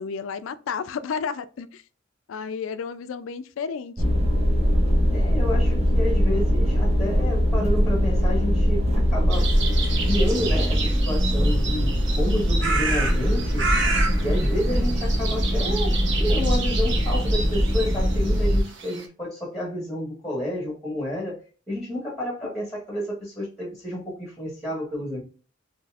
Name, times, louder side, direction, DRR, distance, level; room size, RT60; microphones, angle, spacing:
voice 1, 0.0-1.8 2.3-4.1, left 6 dB, 75° left, 0.4 m, -32 dB
sound 1, 4.0-18.6, equal, 30° right, 0.8 m, -22 dB
voice 2, 5.1-9.5 10.0-13.7 14.2-21.4 21.7-25.2, left 1 dB, ahead, 1.4 m, -30 dB
sound 2, 9.3-19.0, right 4 dB, 65° right, 0.8 m, -31 dB
4.0 x 3.2 x 2.4 m
head